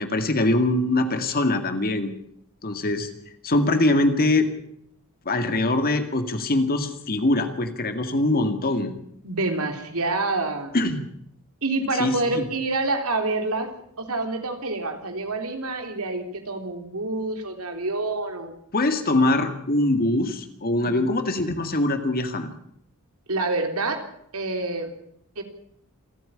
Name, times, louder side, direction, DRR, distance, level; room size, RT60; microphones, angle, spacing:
voice 1, 0.0-2.1 2.6-3.1 3.4-4.5 5.3-8.9 10.7-11.0 12.0-12.4 18.7-22.5, left 2 dB, 45° left, 8 dB, 2.2 m, -23 dB
voice 2, 9.2-10.8 11.6-13.7 14.0-18.5 20.8-20.9 23.3-24.0 24.3-24.9 25.4-25.5, right 2 dB, 75° right, 5 dB, 3.5 m, -27 dB
27.5 x 9.4 x 10.0 m, 0.71 s
head